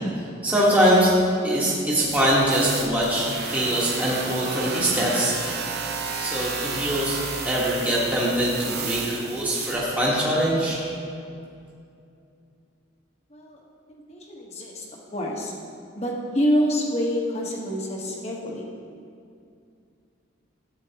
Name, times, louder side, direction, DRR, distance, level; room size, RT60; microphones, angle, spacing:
voice 1, 0.4-1.1 1.4-5.3 6.2-7.2 7.4-10.8, equal, 10° right, -7 dB, 1.4 m, -22 dB
sound 1, 2.1-9.8, right 4 dB, 50° right, 0.9 m, -32 dB
voice 2, 13.9-14.8 15.1-15.5 15.9-18.7, equal, 30° left, -2 dB, 1.2 m, -27 dB
13.0 x 8.7 x 2.9 m, 2.5 s
head